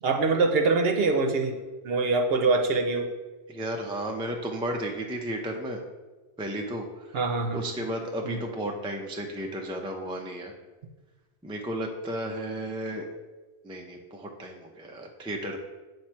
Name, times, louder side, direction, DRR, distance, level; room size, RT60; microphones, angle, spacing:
voice 1, 0.0-1.6 1.8-3.1 7.1-7.6 8.2-8.4, right 3 dB, 65° right, 4 dB, 0.9 m, -24 dB
voice 2, 3.5-5.8 6.4-7.2 7.5-10.5 11.4-13.1 13.6-15.6, right 1 dB, 10° right, 2 dB, 0.3 m, -33 dB
7.3 x 3.2 x 4.4 m, 1.2 s
omnidirectional pair, 1.1 m